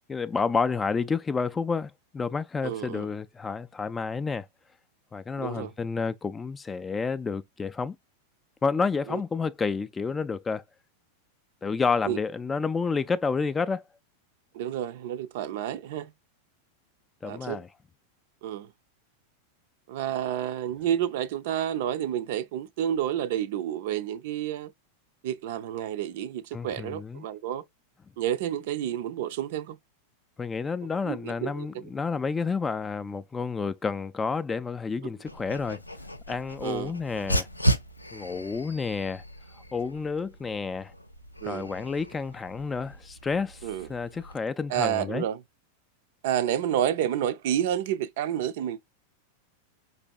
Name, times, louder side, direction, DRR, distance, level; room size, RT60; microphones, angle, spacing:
voice 1, 0.1-4.5 5.1-8.0 8.6-10.6 11.6-13.8 17.2-17.7 26.5-27.2 30.4-35.8 36.3-37.5 38.1-39.2 39.7-40.9 41.4-45.2, left 5 dB, 15° left, 0.3 m, -30 dB
voice 2, 2.6-3.1 5.4-5.7 9.1-9.2 12.1-12.2 14.5-16.1 17.2-17.6 18.4-18.7 19.9-24.7 25.2-27.6 28.2-29.8 31.0-31.7 36.6-36.9 41.4-41.7 43.6-43.9 44.7-45.4 46.2-48.8, right 10 dB, 50° right, 0.4 m, -30 dB
Dog, 35.3-44.3, right 1 dB, 85° left, 0.4 m, -34 dB
5.2 x 3.2 x 2.2 m
figure-of-eight pair, 90°, 0 cm